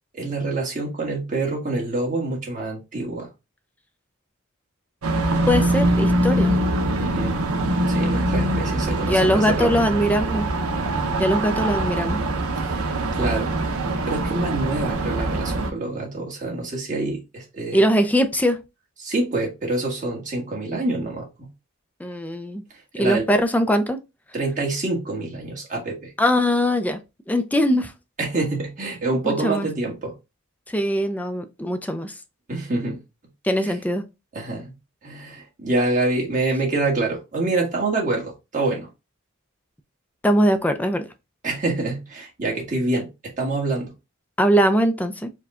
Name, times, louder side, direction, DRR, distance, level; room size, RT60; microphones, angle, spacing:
voice 1, 0.1-3.3 7.0-7.4 7.9-9.7 12.6-12.8 13.1-13.6 14.0-17.8 19.0-21.5 23.0-23.3 24.3-26.1 28.2-30.1 32.5-33.0 33.6-33.7 34.3-34.7 35.0-38.9 41.4-43.9, right 2 dB, 40° right, 1.4 m, -26 dB
sound 1, 5.0-15.7, right 1 dB, 80° right, 0.7 m, -23 dB
voice 2, 5.5-6.6 9.1-10.5 11.2-12.2 17.7-18.6 22.0-22.6 22.9-24.0 26.2-27.0 27.3-27.9 29.2-29.7 30.7-32.1 33.4-34.0 40.2-41.1 44.4-45.3, equal, 5° left, 0.4 m, -21 dB
4.7 x 2.2 x 3.6 m
head